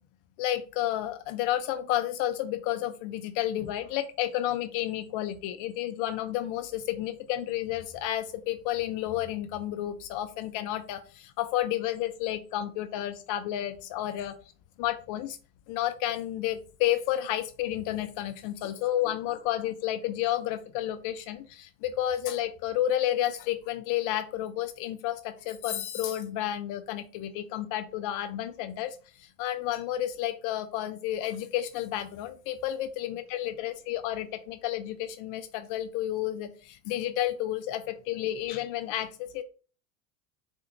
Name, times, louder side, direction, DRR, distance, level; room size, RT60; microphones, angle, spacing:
voice 1, 0.4-14.4 14.8-15.4 15.7-39.4, left 12 dB, 55° left, 9 dB, 0.4 m, -31 dB
4.3 x 2.3 x 2.8 m, 0.38 s
hypercardioid pair, 80°, 39 cm